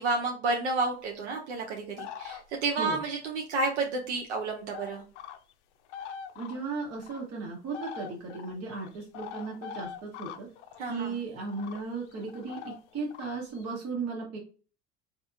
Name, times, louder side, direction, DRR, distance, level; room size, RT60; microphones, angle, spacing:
voice 1, 0.0-5.0 10.8-11.2, right 3 dB, 85° right, 1 dB, 0.7 m, -30 dB
sound 1, 2.0-2.8 4.2-4.3 4.7-5.5 5.9-7.2 7.7-11.0 11.4-13.6, left 8 dB, 80° left, 0.5 m, -43 dB
voice 2, 6.3-10.5 10.8-14.4, right 4 dB, 50° right, -2 dB, 1.1 m, -36 dB
3.3 x 2.9 x 2.5 m, 0.39 s
hypercardioid pair, 75°, 34 cm